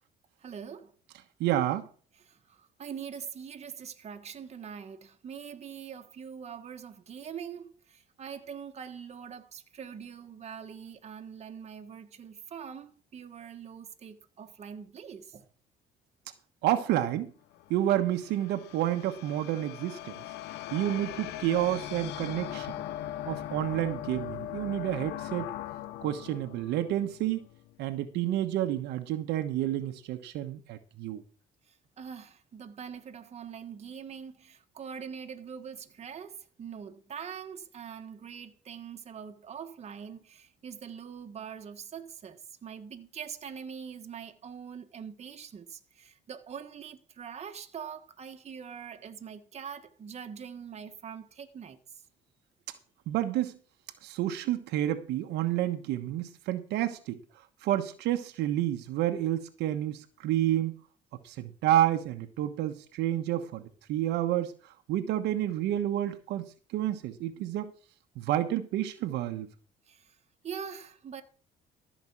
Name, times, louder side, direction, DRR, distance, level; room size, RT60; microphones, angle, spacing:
voice 1, 0.4-0.9 2.2-15.5 21.3-21.4 31.7-51.8 69.9-70.1 70.4-71.2, right 7 dB, 40° right, 1.4 m, -43 dB
voice 2, 1.4-1.9 16.6-17.3 17.7-20.1 20.7-22.7 23.3-25.5 26.0-27.5 27.8-31.2 53.1-53.6 54.0-57.2 57.6-60.7 61.2-64.5 64.9-66.5 66.7-67.7 68.2-69.5, right 13 dB, 85° right, 1.2 m, -29 dB
sound 1, 17.5-27.8, left 13 dB, 80° left, 0.9 m, -40 dB
14.0 x 5.3 x 7.3 m
cardioid pair, 110°, 17 cm